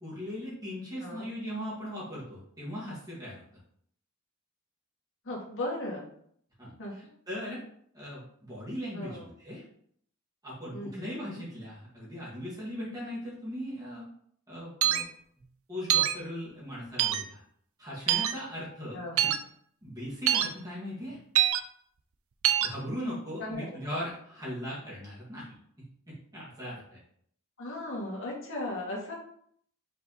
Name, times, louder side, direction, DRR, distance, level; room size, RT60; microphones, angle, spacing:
voice 1, 0.0-3.4 6.6-7.6 7.9-9.6 10.4-14.0 14.5-15.0 15.7-17.4 17.8-19.3 19.8-21.2 22.6-25.5 26.1-27.0, equal, 15° right, -8 dB, 2.2 m, -39 dB
voice 2, 5.2-6.1 6.8-7.1 8.9-9.3 10.7-11.4 18.9-19.3 23.4-24.0 27.6-29.1, left 1 dB, 60° left, -3 dB, 1.9 m, -37 dB
sound 1, 14.8-15.0 15.9-16.1 17.0-17.2 18.1-18.3 19.2-19.4 20.3-20.5 21.3-21.6 22.4-22.7, right 11 dB, 70° right, 0.5 m, -24 dB
5.6 x 4.0 x 4.2 m, 0.65 s
head